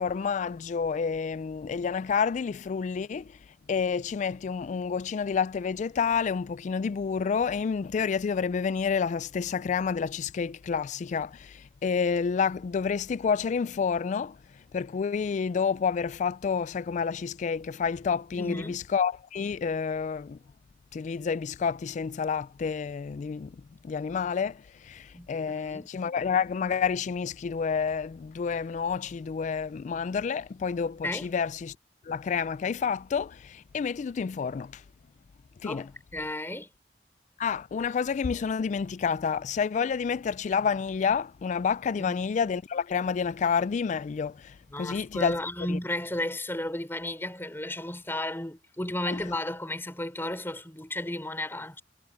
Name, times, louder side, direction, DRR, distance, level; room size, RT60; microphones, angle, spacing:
voice 1, 0.0-3.2 3.7-11.3 11.8-14.3 14.7-20.4 20.9-23.5 23.8-24.5 24.9-25.0 25.3-31.7 32.1-33.3 33.7-34.7 35.6-35.8 37.4-44.3 44.8-45.3 49.1-49.2, left 6 dB, 45° left, 0.3 m, -29 dB
voice 2, 18.3-18.8 25.1-25.9 31.0-31.3 35.6-36.7 41.9-42.2 44.7-51.8, left 1 dB, 15° left, 3.4 m, -34 dB
head